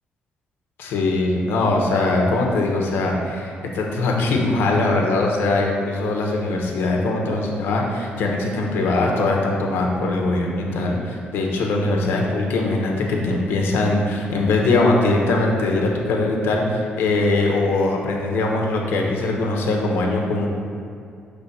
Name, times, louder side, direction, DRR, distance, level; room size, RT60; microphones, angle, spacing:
voice 1, 0.8-20.5, left 2 dB, 85° left, 0 dB, 1.0 m, -21 dB
6.8 x 3.4 x 5.7 m, 2.4 s
cardioid pair, 140°, 4 cm